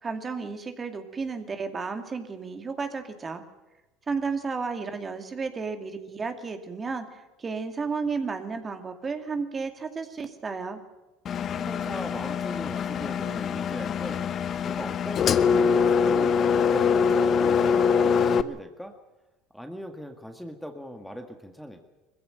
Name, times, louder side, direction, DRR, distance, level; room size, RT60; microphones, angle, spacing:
voice 1, 0.0-3.4 4.1-10.8, right 4 dB, 30° right, 6 dB, 2.4 m, -32 dB
Engine, 11.3-18.4, left 6 dB, 45° left, 0.9 m, -24 dB
voice 2, 11.5-14.2 14.6-18.9 19.5-21.8, equal, ahead, 5 dB, 1.9 m, -39 dB
21.0 x 15.5 x 8.9 m, 1.1 s
supercardioid pair, 90°, 0 cm